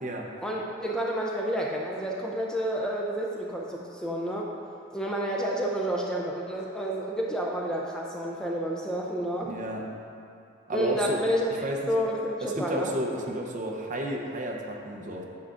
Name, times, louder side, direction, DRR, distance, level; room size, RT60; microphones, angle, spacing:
voice 1, 0.4-4.5 4.9-9.5 10.7-12.9, equal, 5° left, -3 dB, 0.4 m, -30 dB
voice 2, 9.4-9.8 10.7-11.2 11.6-11.8 12.4-15.2, right 1 dB, 40° right, 1 dB, 0.7 m, -32 dB
9.5 x 6.7 x 2.5 m, 2.5 s
head